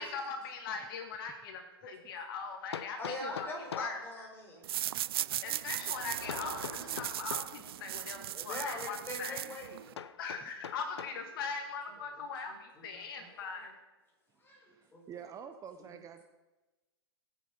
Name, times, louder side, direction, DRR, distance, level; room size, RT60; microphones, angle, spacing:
voice 1, 0.0-4.0 5.4-9.4 10.2-13.7, left 5 dB, 55° left, 5 dB, 2.1 m, -41 dB
Hammer, 1.1-1.2 2.7-4.0 6.3-7.6 10.0-11.2, left 8 dB, 75° left, 0.7 m, -43 dB
voice 2, 3.0-4.6 8.3-9.8 11.2-11.3 12.5-13.7 14.4-15.0, left 2 dB, 15° left, -1 dB, 5.1 m, -43 dB
Motor vehicle (road), 4.3-12.1, right 4 dB, 80° right, 3.2 m, -53 dB
sound 1, 4.6-9.9, right 13 dB, 65° right, 0.5 m, -38 dB
voice 3, 14.7-16.2, right 8 dB, 25° right, 7 dB, 1.0 m, -48 dB
20.5 x 8.6 x 5.5 m, 1.1 s
hypercardioid pair, 110°, 14 cm